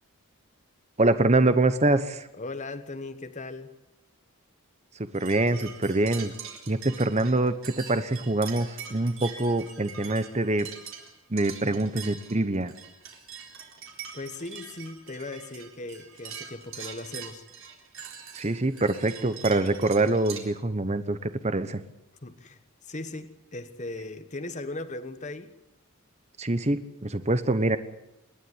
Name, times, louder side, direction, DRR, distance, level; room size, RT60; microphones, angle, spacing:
voice 1, 1.0-2.3 4.9-6.3 6.7-10.7 11.3-12.7 18.3-21.8 26.4-27.8, right 2 dB, 30° right, 11 dB, 1.1 m, -25 dB
voice 2, 2.3-3.7 14.1-17.4 22.2-25.5, left 2 dB, 35° left, 9 dB, 1.3 m, -38 dB
sound 1, 5.1-20.4, right 7 dB, 60° right, 3.9 m, -43 dB
27.5 x 12.0 x 9.7 m, 0.87 s
head